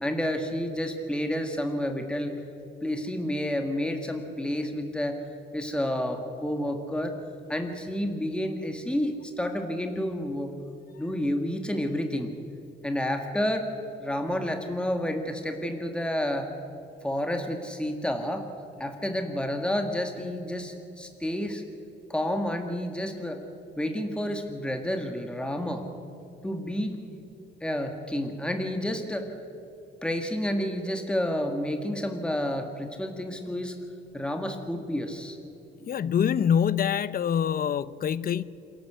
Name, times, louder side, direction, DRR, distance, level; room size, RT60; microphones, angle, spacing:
voice 1, 0.0-2.3 2.8-5.2 5.5-7.2 7.5-10.5 11.0-12.3 12.8-13.7 14.0-16.5 17.0-18.5 18.8-21.6 22.1-23.4 23.8-25.8 26.4-26.9 27.6-29.3 30.0-33.8 34.1-35.4, left 1 dB, 5° left, 4 dB, 1.9 m, -30 dB
voice 2, 35.8-38.4, left 8 dB, 45° left, 18 dB, 0.7 m, -25 dB
27.5 x 12.0 x 8.1 m, 2.9 s
cardioid pair, 90°, 20 cm